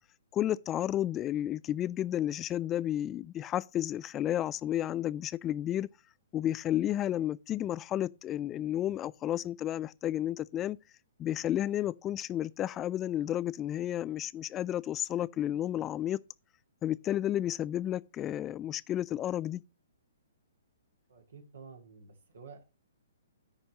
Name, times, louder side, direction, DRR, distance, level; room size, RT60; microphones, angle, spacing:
voice 1, 0.3-5.9 6.3-10.8 11.2-16.2 16.8-19.6, left 12 dB, 20° left, 0.4 m, -32 dB
voice 2, 21.1-22.6, right 5 dB, 75° right, 2.4 m, -51 dB
14.0 x 5.4 x 2.9 m
figure-of-eight pair, 125°, 0 cm